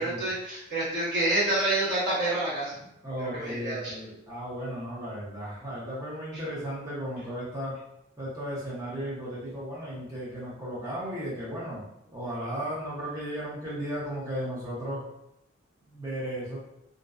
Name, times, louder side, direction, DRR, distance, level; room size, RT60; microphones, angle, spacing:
voice 1, 0.0-2.7 3.2-3.9, right 1 dB, 55° right, -11 dB, 1.2 m, -28 dB
voice 2, 3.0-7.7 8.2-11.8 12.1-15.0 15.9-16.6, equal, 20° right, -8 dB, 0.7 m, -35 dB
2.5 x 2.1 x 2.3 m, 0.83 s
head